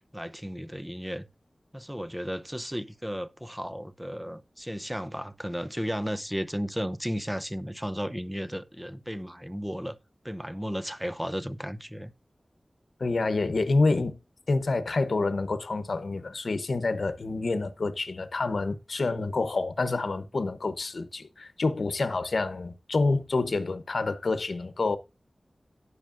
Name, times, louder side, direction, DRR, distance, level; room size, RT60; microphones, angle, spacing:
voice 1, 0.1-1.3 1.7-10.0 10.2-12.1, equal, 5° right, 0.7 m, -34 dB
voice 2, 13.0-14.2 14.5-25.0, left 3 dB, 80° left, 0.9 m, -28 dB
17.5 x 6.4 x 2.6 m
wide cardioid pair, 80°, 0 cm